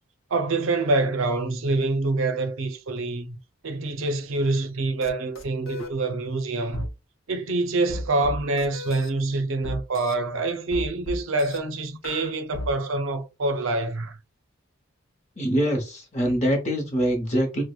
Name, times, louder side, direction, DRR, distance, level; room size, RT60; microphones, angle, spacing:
voice 1, 0.3-3.4 3.6-6.9 7.3-14.2, right 2 dB, 70° right, 0.5 m, -26 dB
sound 1, 5.0-5.1 5.3-5.9 6.7-6.9 7.9-9.1 9.6-10.1 10.7-11.6 12.0-12.7, left 1 dB, 70° left, 0.6 m, -34 dB
voice 2, 15.4-17.6, equal, 35° left, 0.8 m, -24 dB
4.6 x 2.1 x 2.3 m
head